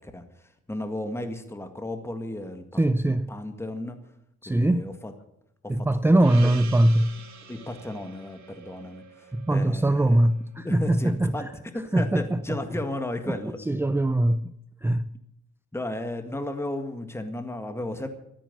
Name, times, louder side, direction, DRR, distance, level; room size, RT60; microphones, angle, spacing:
voice 1, 0.0-4.0 4.5-5.1 5.6-6.1 6.4-6.5 7.5-10.2 10.6-11.5 11.7-13.6 15.7-18.1, left 1 dB, 10° left, 1.9 m, -34 dB
voice 2, 2.8-3.4 4.4-4.9 5.7-7.1 9.3-11.5 11.9-12.4 13.7-14.5 14.8-15.1, right 1 dB, 10° right, 0.5 m, -22 dB
Gong, 6.2-11.0, right 7 dB, 65° right, 2.9 m, -46 dB
13.5 x 10.0 x 8.3 m
cardioid pair, 90°, 30 cm